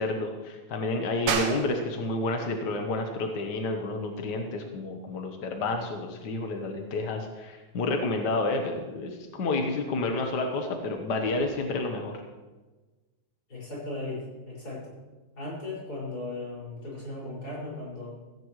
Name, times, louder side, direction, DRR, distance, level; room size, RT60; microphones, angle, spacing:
voice 1, 0.0-12.2, left 2 dB, 60° left, 3 dB, 1.1 m, -30 dB
sound 1, 1.3-11.5, right 6 dB, 85° right, 2.8 m, -40 dB
voice 2, 13.5-14.8 15.4-18.1, left 2 dB, 30° left, -6 dB, 6.1 m, -37 dB
15.5 x 15.5 x 3.2 m, 1.2 s
omnidirectional pair, 3.4 m